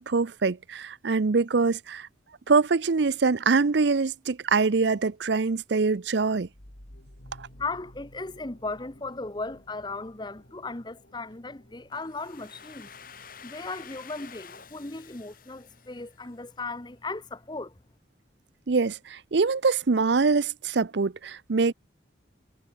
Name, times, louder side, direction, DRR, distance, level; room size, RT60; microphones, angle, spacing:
voice 1, 0.0-2.1 2.5-6.5 7.4-7.5 18.7-21.7, right 4 dB, 65° right, 0.6 m, -24 dB
sound 1, 6.3-15.6, left 1 dB, 70° left, 4.0 m, -55 dB
voice 2, 7.6-12.9 13.4-17.7, left 3 dB, 20° left, 0.9 m, -36 dB
Domestic sounds home sounds, 11.9-16.7, left 7 dB, 45° left, 5.1 m, -49 dB
head